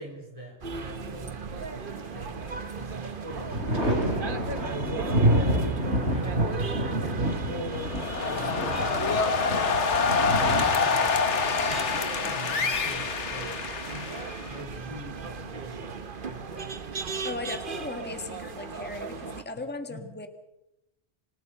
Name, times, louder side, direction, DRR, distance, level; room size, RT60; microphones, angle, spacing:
voice 1, 0.0-9.4 10.0-15.9 16.2-16.7 19.9-20.0, right 1 dB, 30° right, 0 dB, 3.9 m, -41 dB
sound 1, 0.6-19.4, right 5 dB, 50° right, 1.2 m, -37 dB
Thunder, 1.9-2.6 3.0-12.6 14.1-14.9, right 1 dB, 75° right, 3.7 m, -29 dB
sound 2, 7.7-14.6, left 5 dB, 75° left, 1.7 m, -26 dB
voice 2, 17.2-20.3, left 3 dB, 10° left, 6 dB, 1.6 m, -37 dB
27.5 x 19.0 x 5.6 m, 0.89 s
omnidirectional pair, 1.2 m